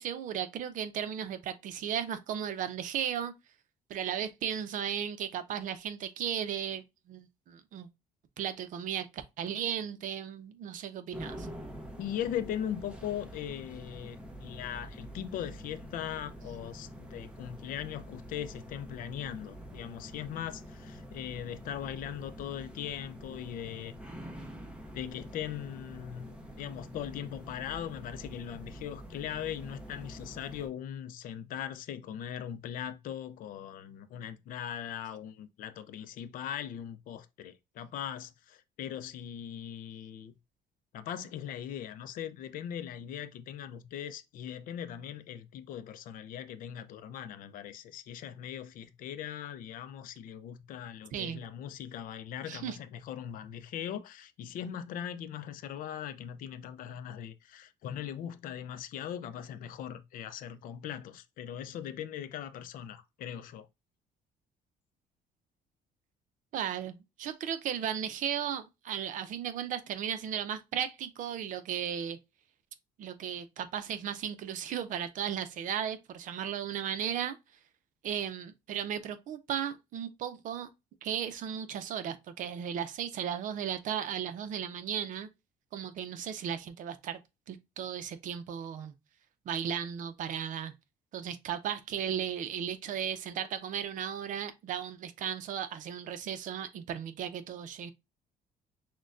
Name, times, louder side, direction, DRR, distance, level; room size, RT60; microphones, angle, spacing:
voice 1, 0.0-3.3 3.9-7.9 8.4-11.5 51.1-51.4 52.5-52.8 66.5-72.2 73.0-77.4 78.0-80.7 81.0-85.3 85.7-87.2 87.5-88.9 89.5-90.7 91.1-97.9, right 9 dB, 55° right, 0.6 m, -35 dB
sound 1, 11.1-30.7, equal, 5° right, 0.7 m, -46 dB
voice 2, 12.0-23.9 24.9-40.3 40.9-63.7, left 10 dB, 65° left, 0.5 m, -40 dB
6.2 x 2.2 x 2.5 m
cardioid pair, 140°, 16 cm